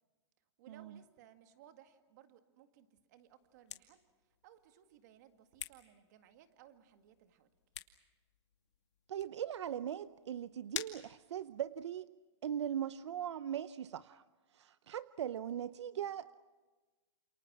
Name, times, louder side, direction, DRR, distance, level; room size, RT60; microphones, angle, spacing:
voice 1, 0.6-7.5, right 10 dB, 40° right, 7 dB, 2.0 m, -62 dB
sound 1, 3.2-11.9, left 9 dB, 80° left, 2.4 m, -51 dB
voice 2, 9.1-12.1 12.4-14.2 14.5-16.3, right 10 dB, 75° right, 14 dB, 0.7 m, -40 dB
29.0 x 28.5 x 6.1 m, 1.3 s
hypercardioid pair, 170°, 15 cm